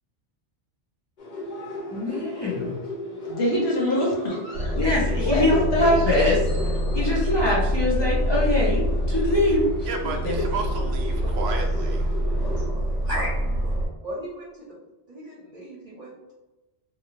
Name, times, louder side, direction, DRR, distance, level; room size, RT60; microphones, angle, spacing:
sound 1, 1.2-12.7, equal, 50° left, 0.9 m, -36 dB
voice 1, 1.9-2.8 4.8-6.4 6.9-9.7, left 1 dB, 35° left, -5 dB, 0.5 m, -23 dB
voice 2, 3.3-4.7 5.2-6.2 10.2-10.3, left 1 dB, 70° left, -4 dB, 1.2 m, -25 dB
Aircraft, 4.5-13.9, equal, 90° left, 1.7 m, -25 dB
voice 3, 9.8-12.1, right 4 dB, 70° right, 3 dB, 0.8 m, -33 dB
voice 4, 13.0-13.4 14.0-14.7 15.1-16.3, equal, 40° right, -5 dB, 0.7 m, -35 dB
2.7 x 2.7 x 2.7 m, 1.0 s
omnidirectional pair, 1.1 m